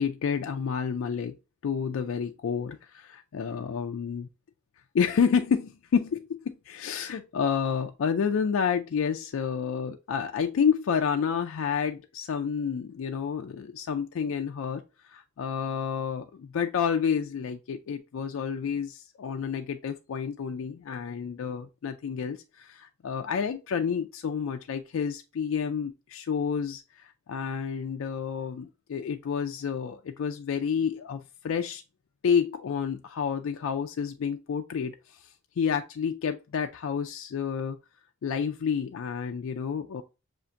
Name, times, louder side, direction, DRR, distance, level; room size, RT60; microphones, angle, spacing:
voice 1, 0.0-1.4 1.6-4.3 4.9-6.4 6.7-14.8 15.1-31.8 32.2-35.3 35.6-37.8 38.2-40.0, left 6 dB, 65° left, 0.3 m, -29 dB
6.8 x 2.5 x 2.5 m
head